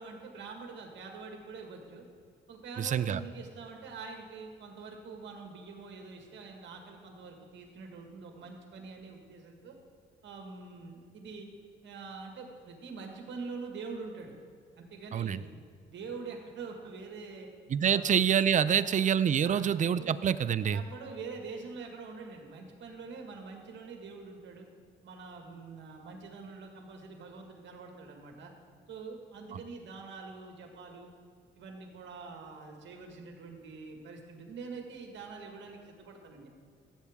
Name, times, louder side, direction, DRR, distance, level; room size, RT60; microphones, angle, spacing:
voice 1, 0.0-2.0 2.5-9.8 10.2-11.5 11.8-14.3 14.8-15.5 15.8-17.5 17.9-18.2 18.6-19.1 19.4-20.2 20.7-24.7 25.0-28.5 28.9-31.2 31.6-36.5, right 4 dB, 70° right, 2 dB, 1.8 m, -45 dB
voice 2, 2.8-3.2 15.1-15.4 17.7-20.8 29.5-29.6, right 8 dB, 40° right, 16 dB, 0.4 m, -26 dB
14.5 x 7.9 x 3.6 m, 2.2 s
cardioid pair, 90°, 20 cm